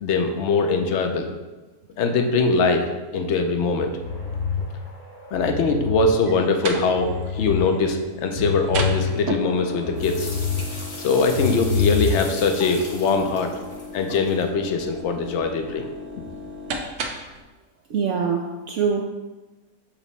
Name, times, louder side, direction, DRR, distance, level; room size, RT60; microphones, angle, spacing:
voice 1, 0.0-1.3 2.0-3.9 5.3-10.3 11.0-13.5 13.9-15.9, left 4 dB, 60° left, 5 dB, 0.8 m, -22 dB
sound 1, 4.0-6.1 6.5-7.6 8.0-10.6 11.0-12.4, left 6 dB, 90° left, 3.0 m, -27 dB
sound 2, 6.2-17.4, right 1 dB, 90° right, 1.4 m, -35 dB
sound 3, 10.0-14.5, left 1 dB, 30° left, 0.6 m, -39 dB
voice 2, 17.9-19.0, right 6 dB, 70° right, 2 dB, 0.7 m, -24 dB
7.2 x 3.0 x 5.4 m, 1.2 s
omnidirectional pair, 1.8 m